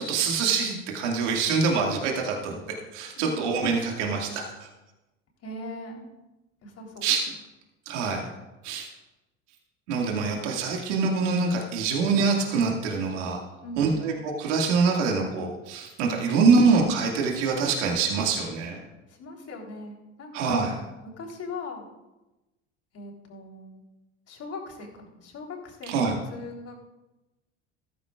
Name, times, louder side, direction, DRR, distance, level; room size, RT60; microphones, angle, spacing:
voice 1, 0.0-2.5 2.9-4.7 7.0-7.2 7.9-8.3 8.6-8.9 9.9-13.4 13.8-18.8 20.3-20.8 25.9-26.2, right 4 dB, 75° right, 0 dB, 2.2 m, -25 dB
voice 2, 3.2-3.5 5.4-6.1 6.6-7.1 13.6-14.1 19.1-20.7 21.2-21.9 22.9-23.8 24.3-26.9, left 2 dB, 45° left, 0 dB, 3.8 m, -40 dB
14.5 x 13.5 x 2.5 m, 1.0 s
hypercardioid pair, 75°, 36 cm